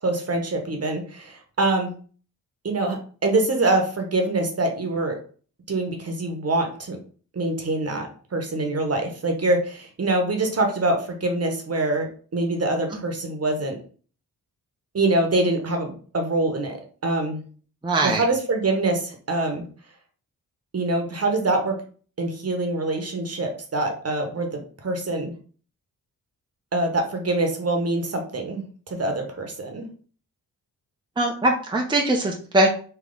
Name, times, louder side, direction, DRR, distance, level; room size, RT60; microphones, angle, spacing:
voice 1, 0.0-1.9 2.6-5.2 5.7-7.0 7.3-13.8 14.9-16.8 17.0-17.4 18.0-19.6 20.7-21.8 22.2-25.3 26.7-29.9, right 2 dB, 40° right, 3 dB, 1.1 m, -25 dB
voice 2, 17.8-18.2 31.2-32.7, right 1 dB, 15° right, 0 dB, 0.7 m, -21 dB
3.3 x 3.0 x 3.8 m, 0.42 s
cardioid pair, 70°, 37 cm